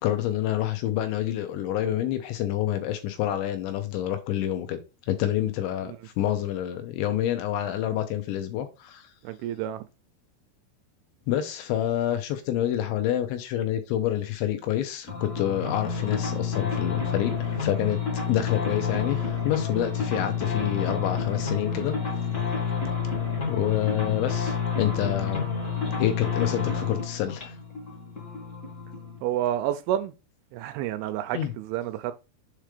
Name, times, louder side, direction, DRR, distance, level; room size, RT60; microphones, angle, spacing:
voice 1, 0.0-4.8 5.1-9.1 11.3-18.0 18.3-22.0 23.5-25.5 26.0-27.5 31.3-31.5, left 12 dB, 80° left, 3.0 m, -28 dB
voice 2, 9.2-9.8 29.2-30.1 30.5-32.1, right 12 dB, 85° right, 2.8 m, -29 dB
sound 1, 15.1-29.2, left 6 dB, 45° left, 0.9 m, -29 dB
7.6 x 3.2 x 5.0 m
omnidirectional pair, 5.7 m